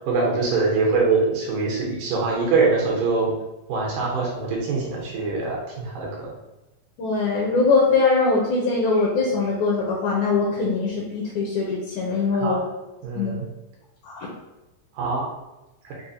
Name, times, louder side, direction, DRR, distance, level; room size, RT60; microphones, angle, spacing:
voice 1, 0.1-3.3 3.7-6.3 12.3-12.6 13.0-13.5 15.0-15.3 15.8-15.9, right 4 dB, 75° right, -2 dB, 2.3 m, -23 dB
voice 2, 7.0-12.6 13.2-13.3 14.0-14.3, left 4 dB, 80° left, -3 dB, 1.8 m, -22 dB
6.1 x 2.1 x 2.6 m, 1.0 s
omnidirectional pair, 3.9 m